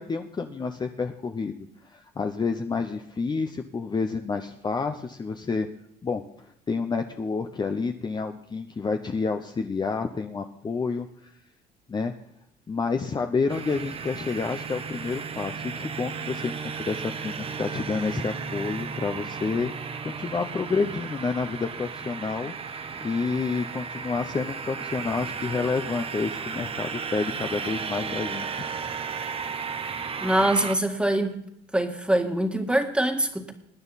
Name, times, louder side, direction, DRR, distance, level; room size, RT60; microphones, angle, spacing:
voice 1, 0.0-1.6 1.9-5.7 6.0-6.2 6.7-11.3 11.9-12.1 12.7-19.7 20.0-22.5 23.0-28.6, left 4 dB, 25° left, 5 dB, 0.8 m, -29 dB
sound 1, 13.5-30.8, right 5 dB, 35° right, 1.0 m, -34 dB
voice 2, 30.2-31.4 31.7-33.5, right 1 dB, 5° right, 4 dB, 1.8 m, -24 dB
21.0 x 9.5 x 4.2 m, 0.77 s
cardioid pair, 110°, 17 cm